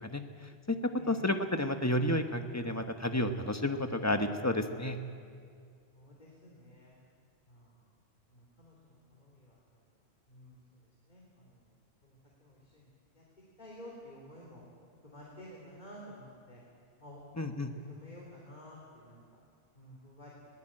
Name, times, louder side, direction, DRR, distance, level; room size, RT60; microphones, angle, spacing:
voice 1, 1.1-5.0 17.4-17.7, left 1 dB, 15° left, 6 dB, 1.2 m, -31 dB
voice 2, 5.9-7.0 7.5-7.8 8.3-9.6 10.3-10.6 11.1-11.7 12.0-12.9 13.1-13.2 13.6-14.6 15.0-16.6 17.0-17.2 17.5-19.2 19.8-20.3, equal, 45° left, -4 dB, 3.6 m, -52 dB
21.5 x 16.5 x 8.9 m, 2.2 s
omnidirectional pair, 1.1 m